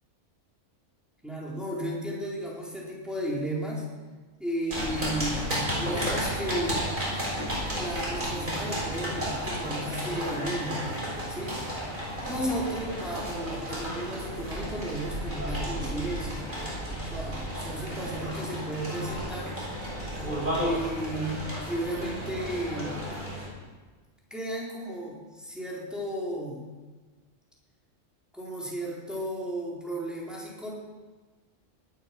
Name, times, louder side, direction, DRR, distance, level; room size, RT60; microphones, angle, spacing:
voice 1, 1.2-3.8 4.4-5.4 5.8-6.9 7.8-10.8 11.3-11.6 12.3-16.5 17.1-19.5 20.6-23.0 24.3-26.6 28.3-30.7, right 1 dB, ahead, -4 dB, 4.0 m, -34 dB
sound 1, 4.7-23.5, equal, 40° right, 6.6 m, -33 dB
19.0 x 12.5 x 6.0 m, 1.3 s
omnidirectional pair, 1.3 m